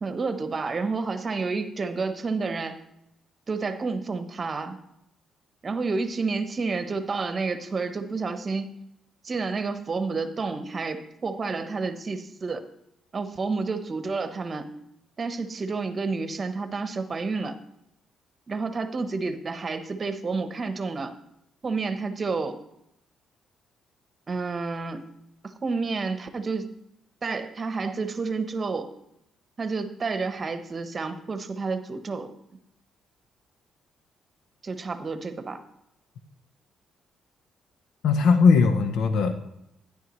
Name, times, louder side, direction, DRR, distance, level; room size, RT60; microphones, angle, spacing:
voice 1, 0.0-2.8 3.5-4.8 5.6-8.7 9.2-12.7 13.1-14.7 15.2-17.6 18.5-21.1 21.6-22.6 24.3-25.1 25.4-26.7 27.2-28.9 29.6-32.3 34.6-35.6, right 4 dB, 35° right, 9 dB, 0.9 m, -30 dB
voice 2, 38.0-39.3, left 5 dB, 80° left, 7 dB, 0.7 m, -19 dB
12.5 x 10.0 x 3.1 m, 0.81 s
cardioid pair, 90°, 0 cm